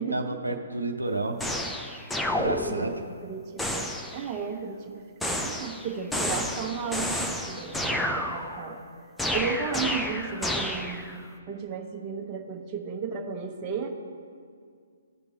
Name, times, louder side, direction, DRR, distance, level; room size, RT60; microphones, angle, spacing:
voice 1, 0.1-1.4 1.7-1.9 2.4-2.9, right 2 dB, 90° right, 4 dB, 0.7 m, -31 dB
sound 1, 1.4-3.1 3.6-4.3 5.2-8.8 9.2-11.2, left 1 dB, 5° left, 0.6 m, -30 dB
voice 2, 2.7-8.8 9.3-11.2 11.5-13.9, right 6 dB, 25° right, 0 dB, 1.2 m, -34 dB
15.5 x 5.2 x 2.8 m, 2.2 s
figure-of-eight pair, 130°, 0 cm